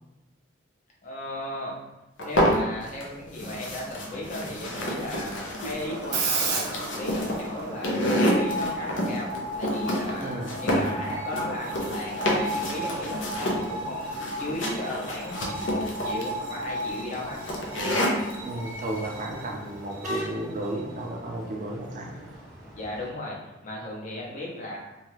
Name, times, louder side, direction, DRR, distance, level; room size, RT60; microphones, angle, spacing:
voice 1, 1.0-1.8 2.2-9.3 9.6-17.4 22.6-23.4 23.6-24.8, left 1 dB, 40° left, -3 dB, 0.6 m, -36 dB
sound 1, 2.2-3.0 3.4-18.4, equal, 80° left, 0.6 m, -28 dB
Screech, 5.8-22.4, right 2 dB, 85° right, 0.6 m, -35 dB
voice 2, 10.2-10.5 18.4-22.2, right 1 dB, 40° right, 1 dB, 0.4 m, -33 dB
sound 2, 17.2-23.1, left 1 dB, ahead, 0.6 m, -43 dB
2.7 x 2.3 x 3.1 m, 1.0 s
head